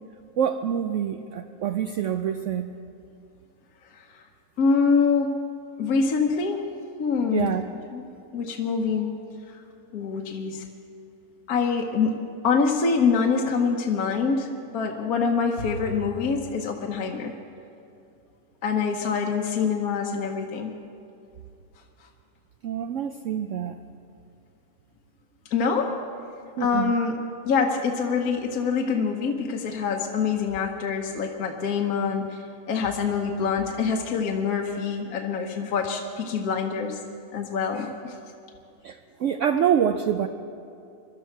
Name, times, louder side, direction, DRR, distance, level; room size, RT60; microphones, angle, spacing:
voice 1, 0.4-2.7 7.3-7.7 22.6-23.8 26.6-26.9 38.8-40.3, right 9 dB, 65° right, 7 dB, 0.8 m, -26 dB
voice 2, 4.6-5.3 5.8-6.6 7.0-7.5 7.9-8.1 8.3-9.2 9.5-9.6 9.9-10.6 11.5-12.1 12.4-14.5 14.7-17.3 18.6-20.7 25.5-25.9 26.6-27.2 27.4-37.0 37.3-38.2, left 5 dB, 65° left, 1 dB, 1.4 m, -25 dB
22.0 x 12.5 x 4.5 m, 2.6 s
omnidirectional pair, 1.7 m